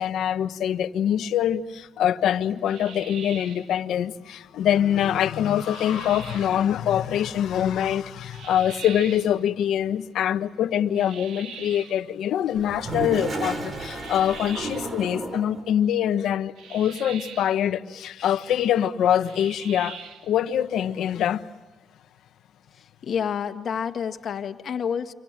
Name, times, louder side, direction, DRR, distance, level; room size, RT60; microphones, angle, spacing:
voice 1, 0.0-20.0 20.2-21.4, left 10 dB, 75° left, 1.1 m, -24 dB
sound 1, 2.7-3.7 5.6-6.6 8.3-9.4 11.0-12.0 13.9-15.0 16.6-17.6 19.2-20.3, right 6 dB, 75° right, 2.5 m, -42 dB
Toilet flush, 12.5-15.6, right 2 dB, 40° right, 4.6 m, -32 dB
voice 2, 22.7-25.1, left 7 dB, 55° left, 1.7 m, -29 dB
29.5 x 26.0 x 7.5 m
cardioid pair, 90°, 0 cm